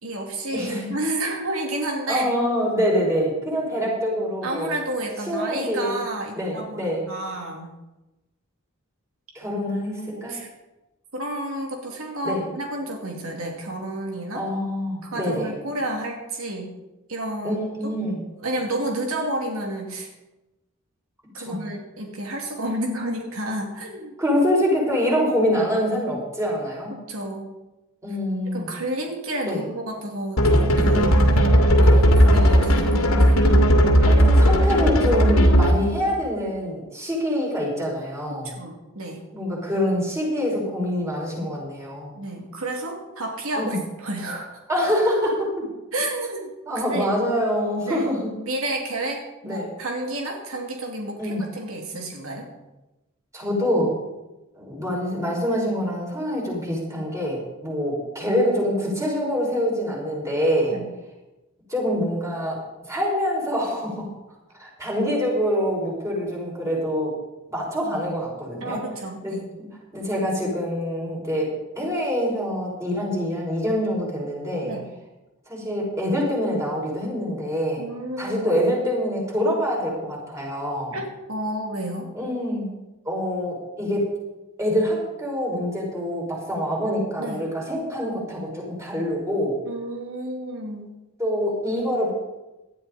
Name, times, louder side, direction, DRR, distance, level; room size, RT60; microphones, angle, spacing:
voice 1, 0.0-2.4 4.4-7.7 10.1-10.5 11.1-14.4 15.0-16.8 17.1-17.6 18.4-20.1 21.3-24.1 27.1-27.5 28.5-33.0 33.2-33.4 38.4-39.2 42.1-44.6 45.9-46.5 46.9-47.1 47.9-48.1 48.4-52.4 60.7-60.9 68.6-69.4 74.6-74.9 77.8-78.6 80.9-82.1 87.2-87.4 89.7-90.9, right 1 dB, 85° right, 1 dB, 2.7 m, -30 dB
voice 2, 0.5-0.9 2.1-4.7 5.3-6.0 6.3-7.0 9.3-10.3 12.2-12.4 14.3-15.5 17.4-18.2 21.4-21.6 24.2-26.9 28.0-28.7 29.5-29.6 34.0-38.5 39.3-42.1 43.6-43.8 44.7-45.6 46.7-48.3 49.4-49.7 51.2-51.4 53.3-53.9 54.5-60.7 61.7-62.6 62.9-64.1 64.6-67.2 67.5-68.8 69.2-69.3 69.9-74.7 75.5-77.8 78.2-81.0 82.1-82.7 83.0-84.1 84.6-89.6 91.2-92.1, equal, 15° right, -4 dB, 5.9 m, -25 dB
sound 1, 30.4-35.9, equal, 85° left, 2.4 m, -16 dB
18.0 x 12.5 x 4.3 m, 1.0 s
head